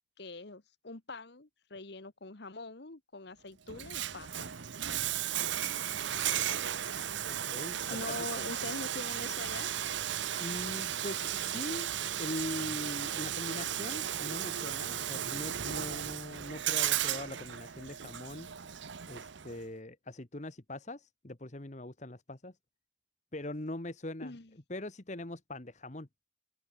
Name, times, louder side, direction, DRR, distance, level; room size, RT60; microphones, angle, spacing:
voice 1, 0.2-4.5 7.9-9.7 24.2-24.5, left 3 dB, 55° left, 1.3 m, -43 dB
Bathtub (filling or washing), 3.7-19.6, right 10 dB, 65° right, 0.9 m, -35 dB
voice 2, 7.3-8.1 10.4-11.9 12.2-18.5 19.1-22.5 23.3-24.3 24.7-26.1, left 1 dB, 35° left, 1.4 m, -41 dB
open air
head